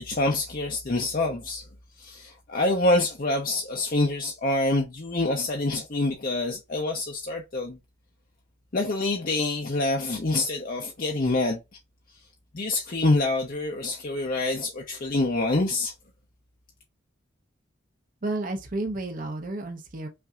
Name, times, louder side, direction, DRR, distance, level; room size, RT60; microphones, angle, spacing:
voice 1, 0.0-1.6 2.0-7.8 8.7-11.6 12.5-15.9, left 2 dB, 45° left, 0.6 m, -26 dB
voice 2, 18.2-20.1, right 2 dB, 40° right, 0.7 m, -31 dB
5.7 x 2.6 x 2.3 m
head